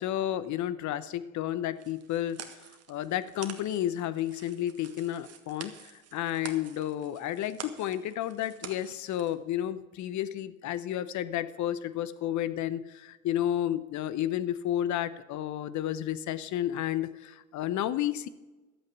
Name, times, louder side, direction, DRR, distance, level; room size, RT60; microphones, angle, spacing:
voice 1, 0.0-2.5 2.9-18.3, left 12 dB, 45° left, 15 dB, 0.9 m, -31 dB
sound 1, 1.8-9.3, right 8 dB, 35° right, 1.6 m, -47 dB
12.5 x 8.4 x 6.9 m, 1.1 s
hypercardioid pair, 80°, 40 cm